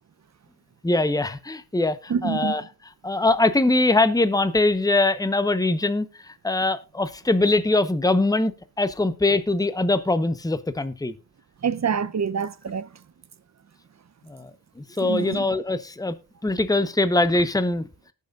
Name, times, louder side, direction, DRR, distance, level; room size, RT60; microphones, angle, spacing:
voice 1, 0.8-2.6 3.0-8.5 8.8-11.1 14.2-14.5 14.8-16.2 16.4-17.9, left 2 dB, 10° left, 1.0 m, -22 dB
voice 2, 2.1-2.6 11.6-12.9 15.0-15.4, right 6 dB, 45° right, 0.8 m, -26 dB
18.5 x 6.7 x 2.5 m
cardioid pair, 50°, 37 cm